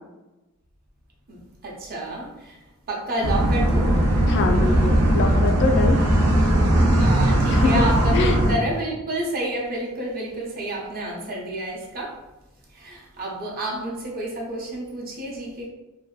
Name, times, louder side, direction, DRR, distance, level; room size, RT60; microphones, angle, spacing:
voice 1, 1.3-2.6 2.9-3.9 7.0-12.1 12.7-15.7, right 1 dB, 45° right, -2 dB, 0.6 m, -30 dB
sound 1, 3.2-8.5, right 1 dB, 85° right, 0.5 m, -19 dB
voice 2, 4.3-6.0 7.5-7.8 8.1-8.4, left 4 dB, 55° left, 4 dB, 0.3 m, -24 dB
2.6 x 2.2 x 2.3 m, 1.0 s
head